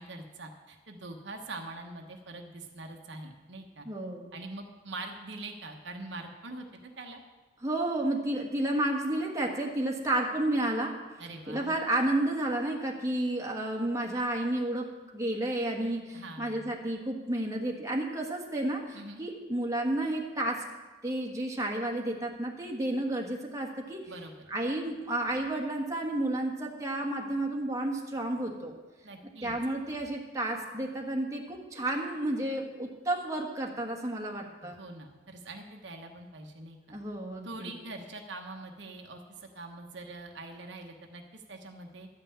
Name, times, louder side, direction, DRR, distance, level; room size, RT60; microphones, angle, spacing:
voice 1, 0.0-3.9 4.3-7.2 11.2-11.8 16.1-16.8 18.9-19.2 24.1-24.3 29.0-29.5 34.6-37.0 37.4-42.1, right 2 dB, 65° right, 3 dB, 1.1 m, -44 dB
voice 2, 3.8-4.3 7.6-11.0 11.5-20.6 21.0-24.0 24.5-28.7 29.2-34.8 36.9-37.7, right 1 dB, 15° right, -1 dB, 1.4 m, -31 dB
12.5 x 5.6 x 8.6 m, 1.3 s
head